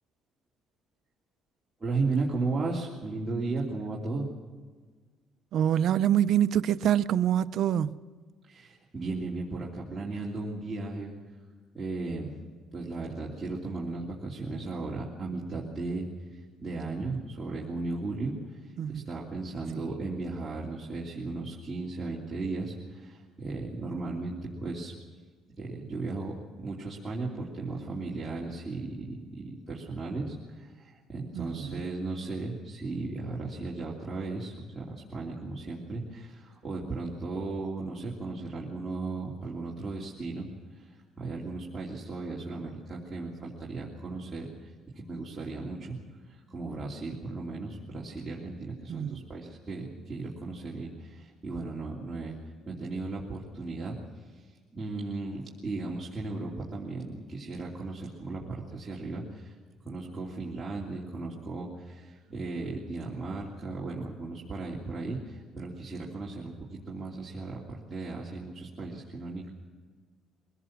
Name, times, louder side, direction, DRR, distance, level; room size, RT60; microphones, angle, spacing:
voice 1, 1.8-4.3 8.4-11.1 11.7-12.3 12.7-24.9 25.6-52.4 52.7-59.6 59.8-69.6, right 3 dB, 15° right, 3.1 m, -36 dB
voice 2, 5.5-7.9 18.8-19.0 19.7-19.8 31.3-31.8 48.9-49.2, right 10 dB, 60° right, 0.7 m, -26 dB
23.0 x 17.0 x 7.4 m
cardioid pair, 140°, 0 cm